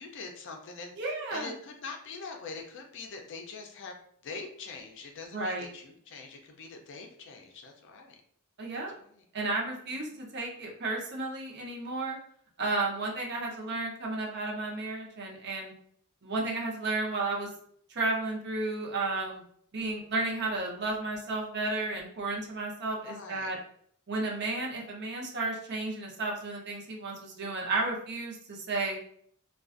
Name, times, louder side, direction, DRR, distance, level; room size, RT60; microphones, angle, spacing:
voice 1, 0.0-4.0 4.2-8.2 9.0-9.2 9.9-10.2 13.4-13.8 23.0-23.6, left 4 dB, 55° left, 3 dB, 0.4 m, -44 dB
voice 2, 1.0-1.5 5.3-5.7 8.6-8.9 9.3-12.2 12.6-15.7 16.2-17.5 17.9-19.4 19.7-23.6 24.1-29.0, right 2 dB, 50° right, -1 dB, 0.6 m, -33 dB
2.4 x 2.2 x 2.4 m, 0.64 s
head